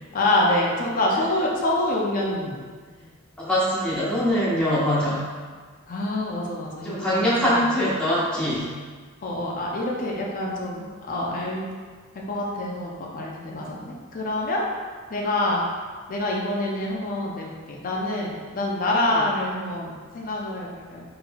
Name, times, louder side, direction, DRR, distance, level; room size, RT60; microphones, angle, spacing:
voice 1, 0.1-2.6 5.9-7.5 9.2-11.7 12.3-14.6 15.1-15.6 16.1-21.0, left 1 dB, 40° left, -2 dB, 0.5 m, -26 dB
voice 2, 3.4-5.3 6.8-8.7 19.1-19.2, equal, 5° left, -10 dB, 1.1 m, -23 dB
4.1 x 3.8 x 2.3 m, 1.5 s
head